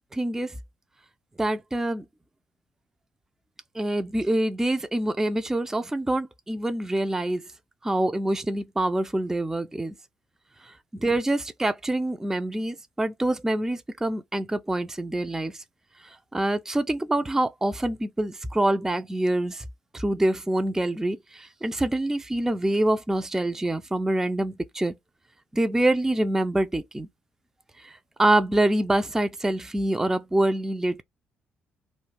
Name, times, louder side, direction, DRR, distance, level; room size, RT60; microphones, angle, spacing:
voice 1, 0.1-0.6 1.4-2.1 3.7-7.5 7.8-9.9 10.6-15.6 16.0-19.7 19.9-24.9 25.5-27.1 27.8-31.0, right 1 dB, 10° right, 0.3 m, -26 dB
2.3 x 2.1 x 3.2 m
figure-of-eight pair, 45°, 5 cm